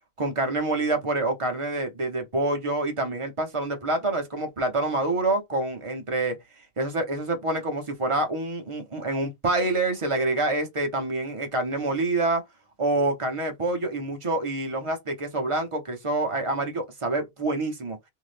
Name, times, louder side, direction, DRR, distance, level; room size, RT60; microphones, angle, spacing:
voice 1, 0.2-6.4 6.8-12.4 12.8-18.0, right 2 dB, 45° right, 0.4 m, -27 dB
2.7 x 2.6 x 3.2 m
omnidirectional pair, 1.5 m